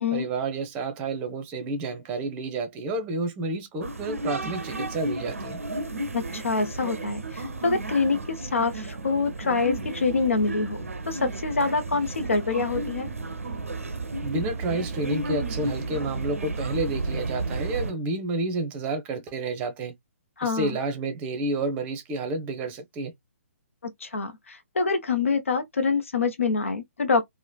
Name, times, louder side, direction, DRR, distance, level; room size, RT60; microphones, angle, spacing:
voice 1, 0.1-5.6 14.2-19.9 20.4-23.1, right 2 dB, 20° right, 0.7 m, -30 dB
sound 1, 3.8-17.9, right 2 dB, 75° right, 0.5 m, -32 dB
voice 2, 6.1-13.1 20.4-20.8 23.8-27.2, left 4 dB, 65° left, 0.6 m, -26 dB
3.1 x 2.1 x 2.2 m
figure-of-eight pair, 130°, 8 cm